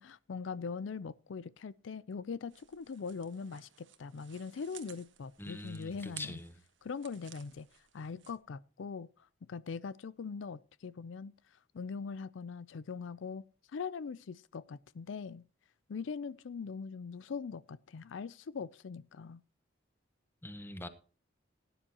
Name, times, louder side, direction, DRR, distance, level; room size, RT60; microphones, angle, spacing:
voice 1, 0.0-6.4 6.8-9.1 9.5-15.5 15.9-19.4, left 5 dB, 75° left, 0.4 m, -42 dB
sound 1, 2.5-8.4, right 11 dB, 75° right, 1.4 m, -55 dB
voice 2, 5.4-6.5 20.4-20.9, left 1 dB, 10° left, 1.0 m, -43 dB
17.5 x 10.0 x 2.9 m
head